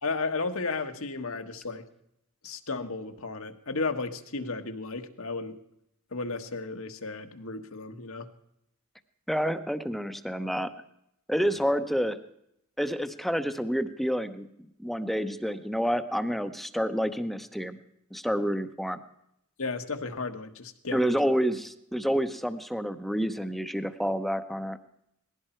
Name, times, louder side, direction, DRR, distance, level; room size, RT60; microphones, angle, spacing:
voice 1, 0.0-1.9 2.4-5.6 6.1-8.3 11.4-11.6 19.6-21.2, left 3 dB, 65° left, 6 dB, 1.5 m, -34 dB
voice 2, 9.3-10.7 11.3-12.2 12.8-14.5 14.8-17.8 18.1-19.0 20.9-24.8, equal, ahead, 10 dB, 0.8 m, -28 dB
19.5 x 15.5 x 4.5 m, 0.77 s
head